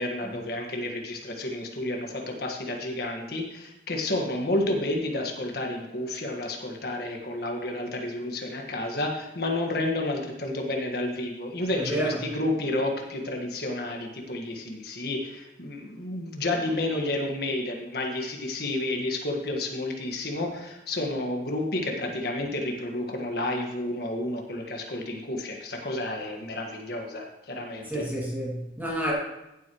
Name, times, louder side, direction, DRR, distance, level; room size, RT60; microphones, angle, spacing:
voice 1, 0.0-28.1, left 1 dB, 60° left, 2 dB, 1.7 m, -30 dB
voice 2, 11.8-12.2 27.9-29.1, right 1 dB, 10° right, -6 dB, 2.5 m, -29 dB
15.5 x 7.8 x 3.1 m, 0.93 s
head